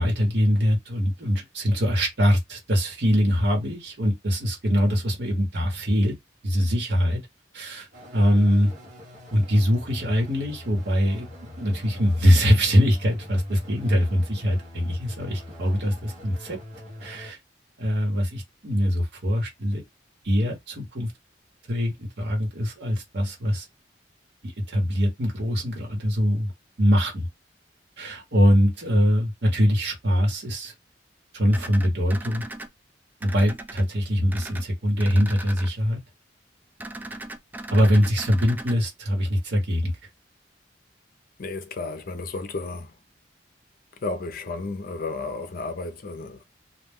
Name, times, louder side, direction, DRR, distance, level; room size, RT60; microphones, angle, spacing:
voice 1, 0.0-6.2 6.4-7.2 7.5-8.7 9.3-11.3 11.6-16.6 17.0-17.4 17.8-19.8 20.2-21.1 21.7-23.7 24.4-26.5 26.8-27.3 28.0-30.7 31.3-32.4 33.2-36.0 37.7-39.9, equal, 65° right, 1.1 m, -23 dB
sound 1, 7.9-17.3, left 1 dB, 45° right, 0.9 m, -42 dB
sound 2, 31.5-32.7 33.2-33.8 34.3-34.6 35.0-35.7 36.8-38.7, right 2 dB, 10° right, 0.3 m, -38 dB
voice 2, 41.4-43.0 44.0-46.4, left 3 dB, 55° left, 0.5 m, -33 dB
2.3 x 2.2 x 3.5 m
head